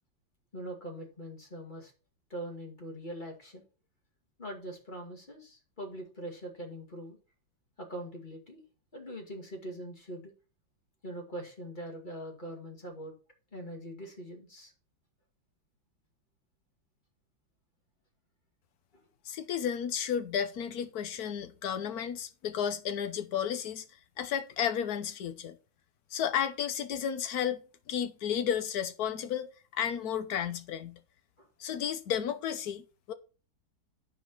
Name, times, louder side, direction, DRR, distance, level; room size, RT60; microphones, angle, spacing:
voice 1, 0.5-1.9 2.3-3.6 4.4-7.2 7.8-8.6 8.9-10.3 11.0-13.1 13.5-14.7 18.9-19.0 31.4-31.5, right 1 dB, 25° left, 2.2 m, -42 dB
voice 2, 19.3-23.8 24.2-25.6 26.1-27.6 27.9-31.0 31.6-32.8 33.1-33.2, left 8 dB, 60° left, 1.2 m, -32 dB
12.5 x 4.7 x 4.4 m
omnidirectional pair, 2.1 m